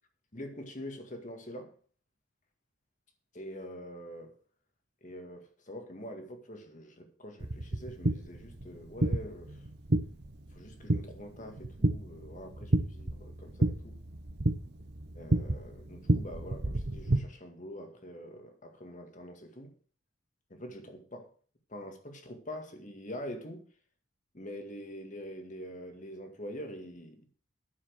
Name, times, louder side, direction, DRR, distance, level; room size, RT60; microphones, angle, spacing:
voice 1, 0.3-1.7 3.3-4.4 5.0-9.7 10.5-14.0 15.2-19.7 20.5-21.3 21.7-23.7 24.3-27.3, equal, 40° left, 1.9 m, -45 dB
sound 1, 7.4-17.2, right 1 dB, 55° right, 1.2 m, -31 dB
10.0 x 7.4 x 6.5 m
head